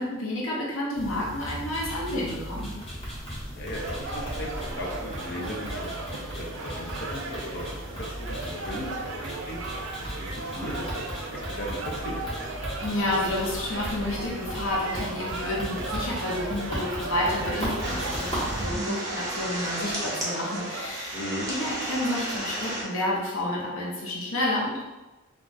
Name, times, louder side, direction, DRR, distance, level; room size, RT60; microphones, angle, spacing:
voice 1, 0.0-2.7 12.8-21.2 21.5-24.8, left 1 dB, 80° left, -5 dB, 0.8 m, -30 dB
sound 1, 0.9-18.6, equal, 25° left, 1.0 m, -36 dB
voice 2, 3.5-7.6 8.1-9.6 10.0-12.3 21.1-21.5, left 1 dB, 50° left, -2 dB, 0.5 m, -37 dB
sound 2, 3.7-20.9, right 3 dB, 70° right, 0.4 m, -36 dB
sound 3, 17.8-22.8, right 1 dB, 15° right, 0.7 m, -33 dB
2.4 x 2.3 x 3.9 m, 1.1 s
head